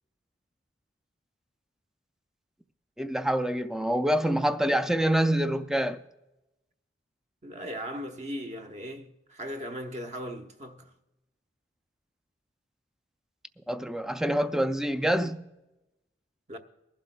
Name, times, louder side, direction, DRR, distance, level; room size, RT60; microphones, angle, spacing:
voice 1, 3.0-6.0 13.7-15.4, right 1 dB, 5° right, 0.3 m, -26 dB
voice 2, 7.4-10.9 16.5-16.6, equal, 40° right, 0.9 m, -38 dB
23.0 x 11.5 x 2.2 m
head